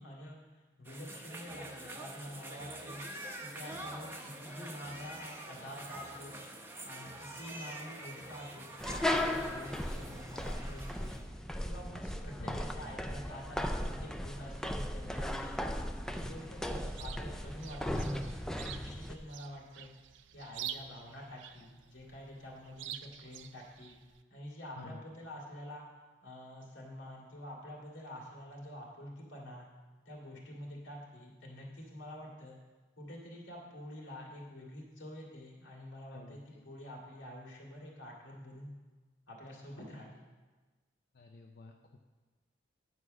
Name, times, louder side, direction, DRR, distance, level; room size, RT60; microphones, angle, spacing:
voice 1, 0.0-3.0 3.4-6.3 6.8-11.3 11.6-15.7 16.1-18.3 18.6-19.9 20.3-23.9 24.3-25.8 26.2-29.7 30.1-32.6 33.0-38.7 39.3-40.2, equal, 85° left, -2 dB, 2.2 m, -47 dB
sound 1, 0.8-11.2, right 1 dB, 10° right, 0.7 m, -46 dB
sound 2, 8.8-19.1, left 1 dB, 5° left, 0.3 m, -37 dB
Chirp tweet, 16.6-24.2, right 10 dB, 75° right, 0.4 m, -48 dB
voice 2, 36.1-36.6 41.1-42.0, left 3 dB, 60° left, 2 dB, 0.5 m, -50 dB
9.7 x 4.8 x 6.3 m, 1.3 s
head